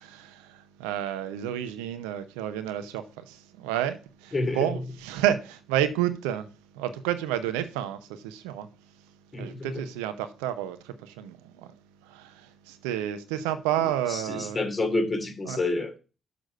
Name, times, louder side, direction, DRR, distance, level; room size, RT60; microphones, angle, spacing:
voice 1, 0.0-6.5 6.7-8.7 9.4-11.8 12.0-14.6 15.5-15.6, right 11 dB, 80° right, 0.7 m, -30 dB
voice 2, 9.3-9.7 14.1-16.0, left 2 dB, 35° left, 2.6 m, -28 dB
6.8 x 6.1 x 5.2 m
hypercardioid pair, 45°, 0 cm